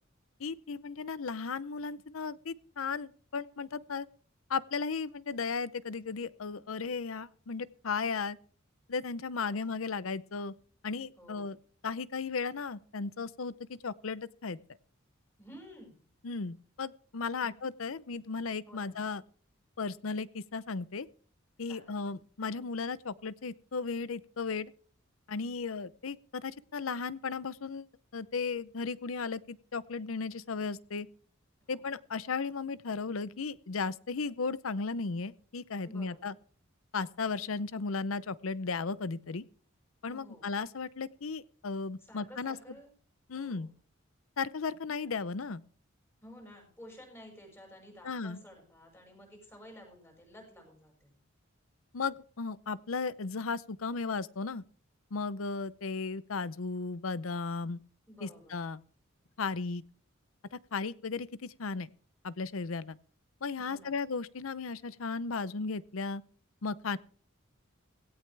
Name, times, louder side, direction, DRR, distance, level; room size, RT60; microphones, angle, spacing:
voice 1, 0.4-4.1 4.5-8.4 8.9-10.5 10.8-11.6 11.8-14.6 16.2-19.2 19.8-21.1 21.6-24.7 25.3-27.9 28.1-31.1 31.7-36.3 36.9-39.4 40.0-42.6 43.3-43.7 44.4-45.6 48.0-48.4 51.9-54.6 55.1-57.8 58.2-58.8 59.4-59.8 60.5-61.9 62.2-63.0 63.4-66.2 66.6-67.0, left 4 dB, 85° left, 0.7 m, -35 dB
voice 2, 9.3-9.7 11.2-11.5 15.4-16.0 17.4-17.5 18.7-19.0 21.7-22.1 31.6-31.9 35.8-36.3 40.1-40.5 42.0-42.9 43.3-43.7 46.2-51.1 58.1-58.6 63.6-64.0, equal, 10° left, 6.0 m, -53 dB
17.0 x 16.5 x 3.4 m
head